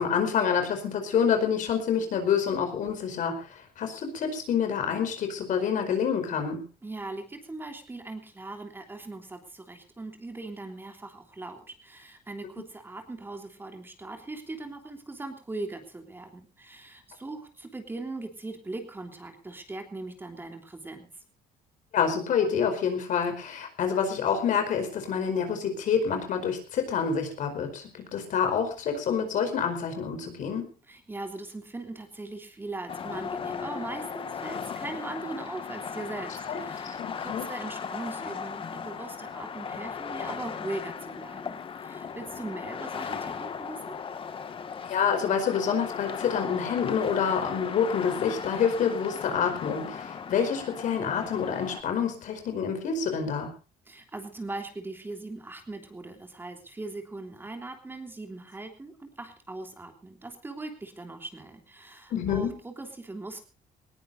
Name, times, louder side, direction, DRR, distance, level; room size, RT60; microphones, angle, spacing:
voice 1, 0.0-6.6 21.9-30.7 36.5-36.6 36.8-37.5 44.9-53.5 62.1-62.5, left 7 dB, 60° left, 7 dB, 4.9 m, -27 dB
voice 2, 6.8-21.1 30.9-43.9 53.9-63.4, right 2 dB, 15° right, 5 dB, 3.4 m, -40 dB
sound 1, 32.9-51.8, left 6 dB, 35° left, 1.9 m, -37 dB
21.0 x 20.0 x 2.7 m, 0.35 s
cardioid pair, 130°, 15 cm